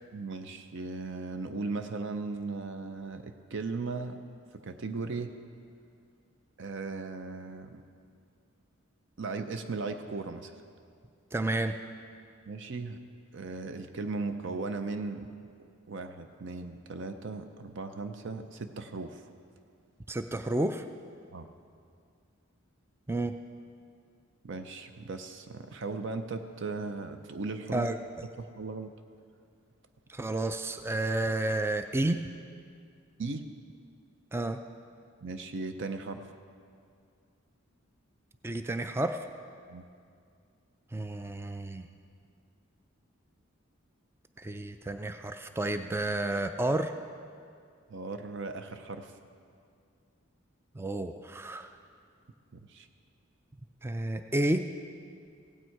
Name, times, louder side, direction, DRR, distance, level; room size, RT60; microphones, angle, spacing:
voice 1, 0.1-4.2 4.5-5.3 6.6-7.8 9.2-10.6 12.5-13.0 13.3-15.3 15.9-19.3 21.3-21.5 24.4-27.9 28.4-28.9 33.2-33.5 35.2-36.3 39.7-39.9 47.9-49.1 52.5-52.9, right 3 dB, 60° right, 7 dB, 0.6 m, -37 dB
voice 2, 11.3-11.7 20.1-20.8 23.1-23.3 27.7-28.0 30.1-32.2 34.3-34.6 38.4-39.2 40.9-41.9 44.4-46.9 50.8-51.7 53.8-54.6, right 2 dB, 10° right, 8 dB, 0.3 m, -31 dB
16.5 x 8.9 x 4.6 m, 2.3 s
head